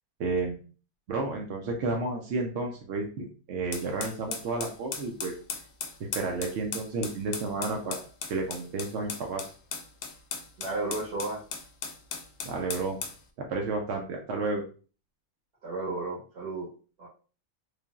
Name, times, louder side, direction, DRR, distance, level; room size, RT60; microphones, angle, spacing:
voice 1, 0.2-0.6 1.1-5.3 6.0-8.0 8.3-9.5 12.4-13.0 13.4-14.6, right 3 dB, 65° right, 1 dB, 0.7 m, -31 dB
sound 1, 3.7-13.2, left 5 dB, 70° left, 0.9 m, -37 dB
voice 2, 10.6-11.4 15.6-16.7 17.0-17.1, right 2 dB, 85° right, -4 dB, 1.4 m, -33 dB
3.2 x 2.5 x 2.3 m, 0.38 s
omnidirectional pair, 1.6 m